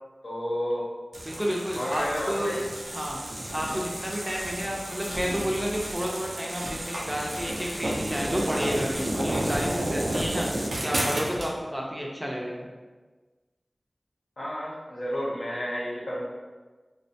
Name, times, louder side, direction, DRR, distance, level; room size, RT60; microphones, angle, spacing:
voice 1, 0.2-0.9 1.8-2.6 14.4-16.3, equal, 75° left, -6 dB, 0.7 m, -31 dB
sound 1, 1.1-11.5, right 1 dB, 85° right, 0.4 m, -32 dB
voice 2, 1.3-2.6 2.9-3.2 3.5-10.5 10.8-12.7, equal, 15° right, -2 dB, 0.4 m, -31 dB
2.4 x 2.1 x 2.7 m, 1.3 s
wide cardioid pair, 55°, 0 cm